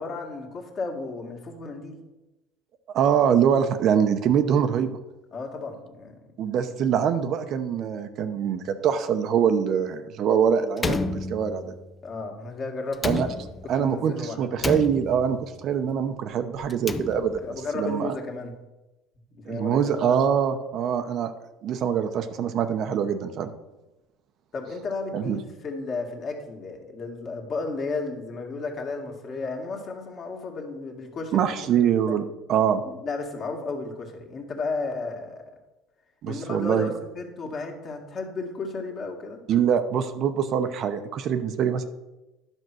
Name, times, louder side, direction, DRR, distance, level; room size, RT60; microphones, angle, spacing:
voice 1, 0.0-2.0 5.3-6.1 12.0-13.4 13.8-14.5 17.4-18.5 19.3-20.1 24.5-31.7 32.1-32.2 32.8-35.4 36.2-39.4, left 3 dB, 40° left, 2 dB, 2.0 m, -33 dB
voice 2, 2.9-5.0 6.4-11.7 13.0-13.3 13.7-17.4 17.7-18.2 19.5-21.3 21.6-23.5 25.1-25.4 31.3-32.8 36.2-36.9 39.5-41.8, right 8 dB, 50° right, 9 dB, 0.8 m, -24 dB
Slam, 10.8-11.9 12.9-13.9 14.6-15.5 16.6-17.6, left 3 dB, 20° left, 0.6 m, -31 dB
10.5 x 5.5 x 6.2 m, 1.0 s
cardioid pair, 125°, 0 cm